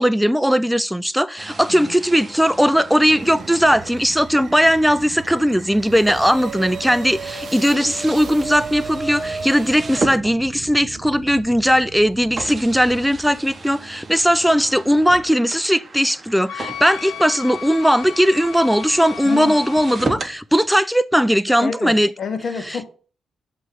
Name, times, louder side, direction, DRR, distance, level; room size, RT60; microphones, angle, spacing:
voice 1, 0.0-22.1, equal, ahead, 0.3 m, -18 dB
sound 1, 1.4-10.9 11.6-11.7 12.4-20.4, right 3 dB, 35° right, 0.9 m, -34 dB
sound 2, 3.0-13.6, right 6 dB, 60° right, 0.5 m, -38 dB
Wind instrument woodwind instrument, 16.5-20.1, left 11 dB, 85° left, 0.4 m, -35 dB
voice 2, 19.2-19.6 21.6-22.9, left 5 dB, 55° left, 1.3 m, -28 dB
7.4 x 3.1 x 4.9 m
cardioid pair, 65°, 0 cm